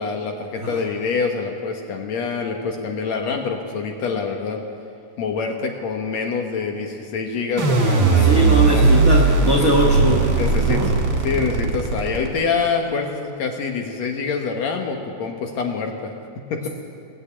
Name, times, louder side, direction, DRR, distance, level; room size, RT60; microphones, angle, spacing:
voice 1, 0.0-4.6 5.2-9.0 9.6-9.9 10.4-10.8 11.2-16.7, left 5 dB, 65° left, 3 dB, 2.1 m, -26 dB
sound 1, 7.6-12.6, right 3 dB, 45° right, 2.0 m, -18 dB
voice 2, 8.2-10.3 10.5-10.9, right 1 dB, 90° right, -2 dB, 0.7 m, -20 dB
19.0 x 6.9 x 8.5 m, 2.4 s
omnidirectional pair, 3.8 m